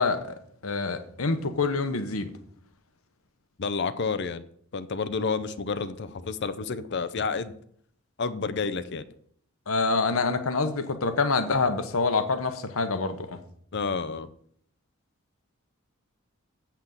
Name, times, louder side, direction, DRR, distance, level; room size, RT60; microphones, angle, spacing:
voice 1, 0.0-2.3 9.7-13.4, left 4 dB, 70° left, 9 dB, 1.0 m, -26 dB
voice 2, 3.6-4.4 4.7-7.5 8.2-9.1 13.7-14.3, left 4 dB, 50° left, 13 dB, 0.5 m, -30 dB
8.2 x 5.9 x 7.2 m, 0.64 s
head